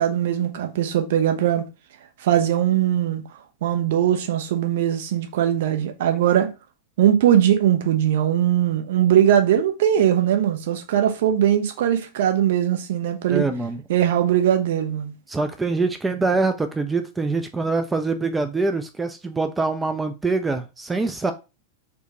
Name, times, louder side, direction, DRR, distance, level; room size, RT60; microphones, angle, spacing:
voice 1, 0.0-1.6 2.2-3.2 3.6-6.5 7.0-13.4 13.9-15.1, right 10 dB, 55° right, 0.6 m, -20 dB
voice 2, 13.3-13.8 15.3-21.3, right 3 dB, 10° right, 0.3 m, -24 dB
4.4 x 2.2 x 2.8 m
figure-of-eight pair, 90°, 0 cm